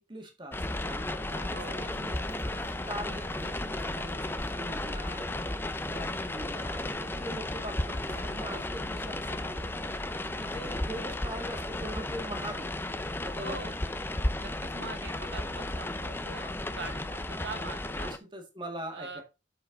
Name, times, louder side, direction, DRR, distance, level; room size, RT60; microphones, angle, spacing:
voice 1, 0.0-5.3 5.9-9.8 10.4-12.7 13.2-14.0 18.0-19.2, right 1 dB, 25° right, 1.9 m, -42 dB
sound 1, 0.5-18.2, left 1 dB, 15° left, 0.5 m, -34 dB
sound 2, 1.3-11.9, right 2 dB, 55° right, 1.9 m, -53 dB
voice 2, 1.5-1.9 13.4-13.8 14.4-18.1 18.9-19.2, right 3 dB, 80° right, 1.2 m, -42 dB
7.4 x 5.7 x 3.9 m
head